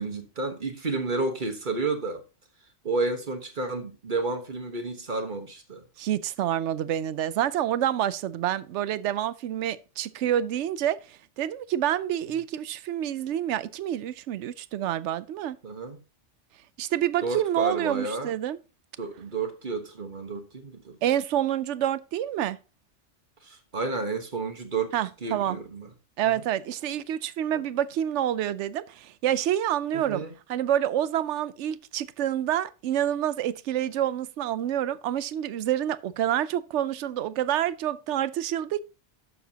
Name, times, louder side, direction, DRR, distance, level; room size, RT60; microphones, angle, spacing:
voice 1, 0.0-2.2 2.8-5.8 15.6-16.0 17.2-18.3 19.0-21.0 23.4-24.9 25.2-25.9 29.9-30.3, right 3 dB, 45° right, 1.4 m, -31 dB
voice 2, 6.0-15.6 16.8-18.6 21.0-22.6 24.9-25.6 26.2-30.2 30.5-38.8, right 11 dB, 80° right, 0.9 m, -28 dB
11.0 x 7.1 x 2.8 m
omnidirectional pair, 1.2 m